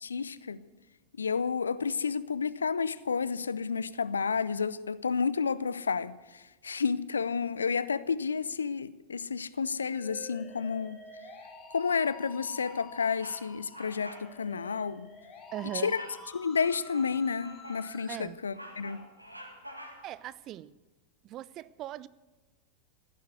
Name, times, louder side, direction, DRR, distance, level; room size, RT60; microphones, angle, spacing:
voice 1, 0.0-0.6 1.2-11.0 11.7-15.1 15.8-16.1 16.3-19.0, left 5 dB, 75° left, 0.5 m, -31 dB
Musical instrument, 9.9-18.3, left 4 dB, 25° left, 2.2 m, -49 dB
Bird vocalization bird call bird song, 11.9-12.3 12.6-12.8 13.1-13.4 13.7-14.3 14.6-14.8 15.8-16.2 16.7-17.9 18.3-20.2, equal, 90° right, 2.0 m, -47 dB
voice 2, 15.5-15.9 18.1-18.4 20.0-20.7 21.2-22.1, right 13 dB, 35° right, 0.4 m, -39 dB
15.5 x 9.3 x 8.0 m
figure-of-eight pair, 90°, 0 cm